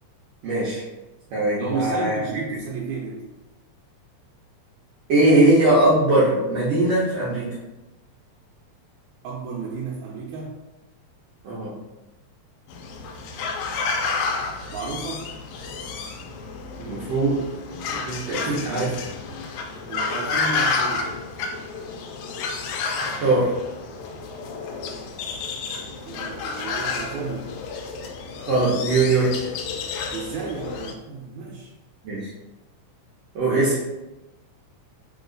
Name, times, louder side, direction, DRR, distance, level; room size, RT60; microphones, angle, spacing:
voice 1, 0.4-0.8 1.3-2.2 5.1-7.5 11.4-11.8 16.8-17.4 17.9-19.0 23.0-23.5 28.5-29.4 32.0-32.3 33.4-33.8, right 2 dB, 65° right, -8 dB, 1.9 m, -20 dB
voice 2, 1.6-3.2 9.2-10.5 14.7-15.3 19.9-21.1 25.8-27.5 30.1-31.7, right 5 dB, 85° right, -4 dB, 2.1 m, -32 dB
sound 1, 12.7-30.9, left 4 dB, 80° left, 1.8 m, -30 dB
4.5 x 3.0 x 3.8 m, 1.0 s
omnidirectional pair, 3.3 m